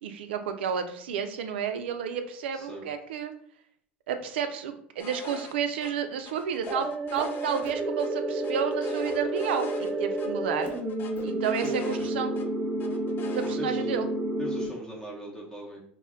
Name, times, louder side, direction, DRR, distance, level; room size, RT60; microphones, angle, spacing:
voice 1, 0.0-3.3 4.1-10.7 11.2-12.3 13.3-14.1, right 7 dB, 75° right, 8 dB, 0.3 m, -31 dB
voice 2, 2.5-2.8 11.6-11.7 13.5-14.0 14.4-15.8, right 1 dB, 10° left, -3 dB, 0.7 m, -39 dB
sound 1, 5.0-5.5 5.8-5.9 6.3-8.1 8.4-9.9 10.2-10.3 10.6-12.5 12.8-13.6, left 6 dB, 35° left, 0.4 m, -43 dB
sound 2, 6.7-14.7, right 1 dB, 30° right, 0.8 m, -30 dB
2.1 x 2.1 x 3.5 m, 0.62 s
hypercardioid pair, 85°, 6 cm